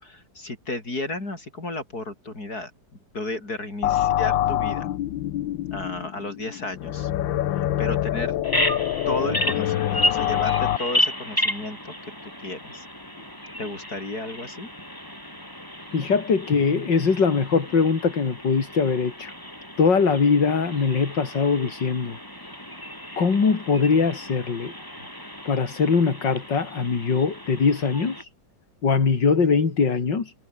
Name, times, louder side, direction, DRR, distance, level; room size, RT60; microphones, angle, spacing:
voice 1, 0.0-2.7 3.1-4.9 5.7-7.1 7.6-8.3 9.1-11.9 12.2-12.9 13.6-14.7 25.0-25.1, left 2 dB, 50° left, 7.2 m, -33 dB
sound 1, 3.8-10.8, left 12 dB, 85° left, 1.6 m, -25 dB
Bird vocalization bird call bird song, 8.4-28.2, equal, 10° left, 6.2 m, -33 dB
voice 2, 15.9-19.3 19.8-22.2 23.2-24.7 25.5-28.3 28.8-30.3, left 5 dB, 65° left, 3.6 m, -22 dB
omnidirectional pair, 2.1 m